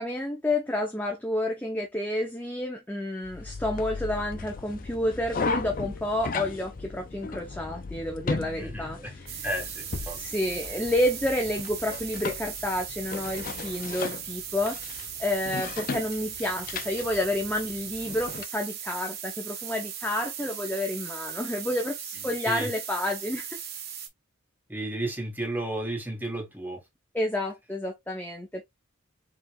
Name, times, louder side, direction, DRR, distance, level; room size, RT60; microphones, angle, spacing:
voice 1, 0.0-9.4 10.2-14.9 15.2-23.6 27.1-28.7, left 1 dB, 10° left, 0.7 m, -30 dB
sound 1, 3.2-18.4, left 4 dB, 40° left, 0.5 m, -36 dB
voice 2, 8.6-9.1 9.4-10.2 22.4-22.7 24.7-26.8, right 1 dB, 10° right, 1.3 m, -33 dB
sound 2, 9.3-24.1, right 8 dB, 45° right, 1.2 m, -38 dB
5.0 x 3.6 x 2.3 m
head